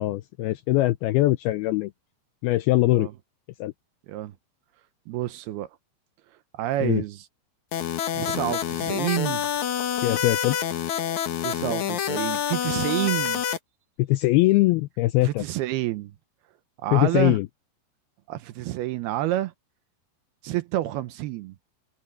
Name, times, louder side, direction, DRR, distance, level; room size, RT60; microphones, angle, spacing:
voice 1, 0.0-1.9 2.4-3.1 3.6-3.7 6.8-7.0 10.0-10.6 14.0-15.4 16.9-17.4, left 18 dB, 85° left, 2.2 m, -22 dB
voice 2, 5.1-5.7 6.6-7.3 8.1-9.5 11.4-13.4 15.2-16.1 16.8-17.4 18.3-19.5 20.4-21.6, right 15 dB, 75° right, 2.5 m, -28 dB
sound 1, 7.7-13.6, left 9 dB, 60° left, 2.1 m, -27 dB
omnidirectional pair, 5.0 m